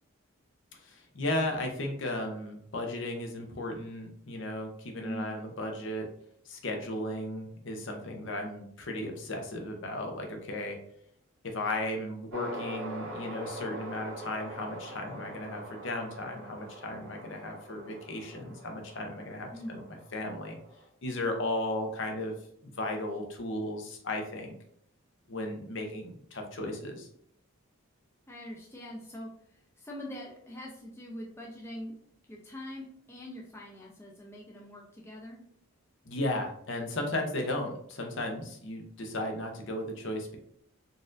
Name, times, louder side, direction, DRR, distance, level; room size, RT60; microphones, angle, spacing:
voice 1, 0.8-6.1 6.5-10.8 11.4-19.8 20.1-20.6 21.0-22.3 22.6-24.5 25.3-27.1 36.0-40.4, left 1 dB, 60° left, 3 dB, 0.7 m, -35 dB
voice 2, 5.0-5.4 19.5-19.8 28.3-31.9 32.3-35.4, equal, 10° left, -3 dB, 0.4 m, -43 dB
sound 1, 12.3-20.8, right 1 dB, 85° right, 1.4 m, -44 dB
4.0 x 2.5 x 2.5 m, 0.68 s
head